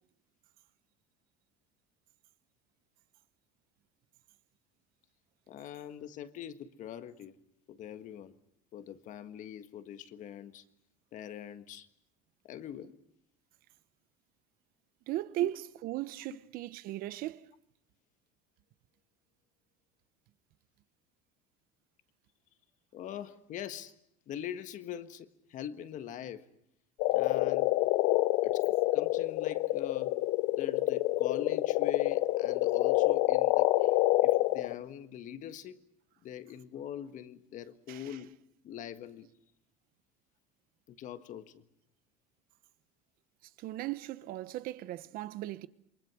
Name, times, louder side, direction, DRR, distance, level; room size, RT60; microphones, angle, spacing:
voice 1, 5.5-7.3 7.7-8.4 8.7-10.6 11.1-11.9 12.4-13.0 15.4-15.5 22.9-23.9 24.3-26.5 27.1-27.8 28.4-30.2 30.6-35.8 36.2-38.4 38.6-39.3 40.9-41.6, left 10 dB, 50° left, 1.6 m, -43 dB
voice 2, 15.1-17.5 37.9-38.1 43.6-45.7, right 15 dB, 60° right, 1.0 m, -37 dB
sound 1, 27.0-34.8, left 18 dB, 70° left, 0.9 m, -27 dB
28.0 x 22.5 x 6.3 m
cardioid pair, 130°, 17 cm